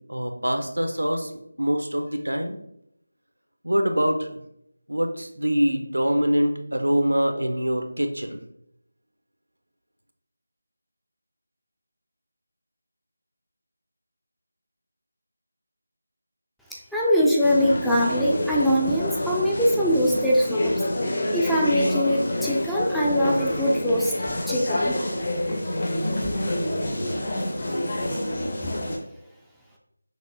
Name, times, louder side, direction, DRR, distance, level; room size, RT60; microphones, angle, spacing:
voice 1, 0.1-1.3 1.6-2.6 3.6-4.3 4.9-8.4, equal, 85° right, 5 dB, 0.6 m, -24 dB
voice 2, 16.7-20.8 21.3-24.1 24.5-25.0 26.2-26.3, equal, ahead, -5 dB, 0.3 m, -22 dB
sound 1, 17.4-29.0, left 1 dB, 45° left, 0.8 m, -27 dB
6.0 x 2.6 x 2.7 m, 0.76 s
figure-of-eight pair, 165°, 0 cm